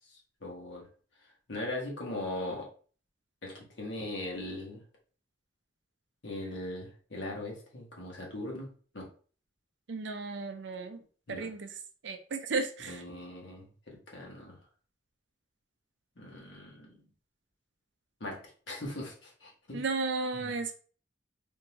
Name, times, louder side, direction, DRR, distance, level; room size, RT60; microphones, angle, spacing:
voice 1, 0.1-0.8 1.5-2.7 3.4-4.8 6.2-8.7 8.9-9.1 11.3-11.5 12.8-14.6 16.2-17.0 18.2-18.4 18.7-19.8 20.3-20.5, left 1 dB, 70° left, -1 dB, 1.2 m, -40 dB
voice 2, 9.9-11.0 11.3-11.7 12.0-13.0 19.7-20.7, right 3 dB, 70° right, 7 dB, 0.5 m, -34 dB
3.6 x 2.6 x 2.9 m, 0.41 s
head